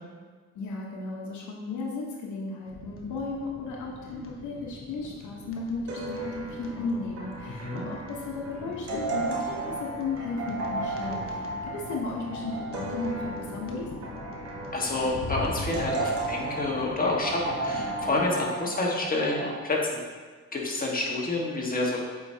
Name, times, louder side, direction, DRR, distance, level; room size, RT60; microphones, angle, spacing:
voice 1, 0.5-11.5 11.7-13.9, left 3 dB, 75° left, -2 dB, 1.1 m, -35 dB
sound 1, 2.7-18.3, left 3 dB, 45° left, 1.0 m, -41 dB
sound 2, 5.9-19.6, right 3 dB, 55° right, 1.2 m, -35 dB
voice 2, 7.5-7.8 14.7-20.0 20.5-22.0, left 2 dB, 30° left, -2 dB, 1.6 m, -28 dB
7.9 x 4.9 x 2.8 m, 1.5 s
cardioid pair, 90°, 30 cm